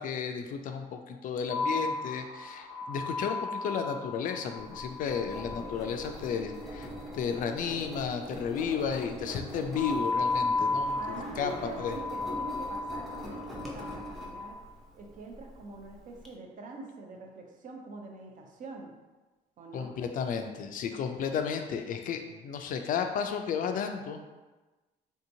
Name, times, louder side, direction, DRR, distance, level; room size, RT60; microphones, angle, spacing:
voice 1, 0.0-11.5 11.8-12.0 19.7-24.2, left 6 dB, 55° left, 6 dB, 0.4 m, -33 dB
sound 1, 1.5-6.8 9.8-14.5, left 3 dB, 15° right, 1.1 m, -34 dB
Engine, 4.6-16.3, equal, ahead, 0.6 m, -43 dB
voice 2, 11.0-14.6 14.9-18.9 19.6-20.0, right 3 dB, 50° right, 2 dB, 0.6 m, -44 dB
3.4 x 2.8 x 2.6 m, 1.2 s
cardioid pair, 110°, 17 cm